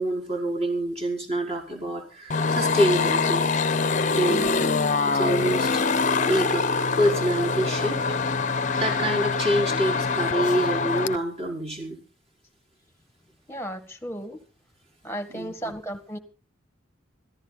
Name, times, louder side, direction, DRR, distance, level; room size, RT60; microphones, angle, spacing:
voice 1, 0.0-3.4 4.2-4.7 5.1-5.8 6.3-6.7 7.0-8.3 8.7-12.0 15.3-15.5, equal, 30° right, 5.1 m, -26 dB
sound 1, 2.3-11.2, left 4 dB, 40° left, 0.7 m, -24 dB
voice 2, 4.3-4.8 13.5-14.4 15.0-16.2, equal, 10° left, 1.8 m, -35 dB
26.5 x 14.5 x 2.4 m
head